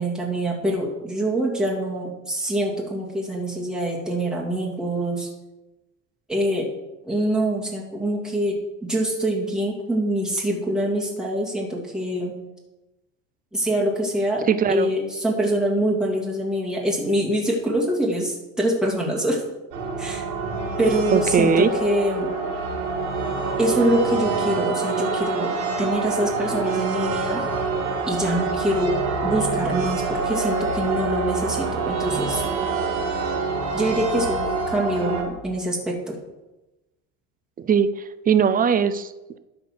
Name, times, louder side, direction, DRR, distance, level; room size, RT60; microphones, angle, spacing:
voice 1, 0.0-5.3 6.3-6.7 7.0-12.4 13.5-14.4 14.7-19.4 20.0-20.2 20.8-22.3 23.6-27.4 28.1-32.4 33.7-36.2, right 1 dB, ahead, -4 dB, 2.6 m, -25 dB
voice 2, 14.4-14.9 21.1-21.7 37.6-39.4, right 7 dB, 25° right, 13 dB, 0.5 m, -20 dB
sound 1, 19.7-35.2, right 4 dB, 80° right, 2.9 m, -26 dB
11.0 x 4.4 x 7.6 m, 1.0 s
cardioid pair, 125°, 36 cm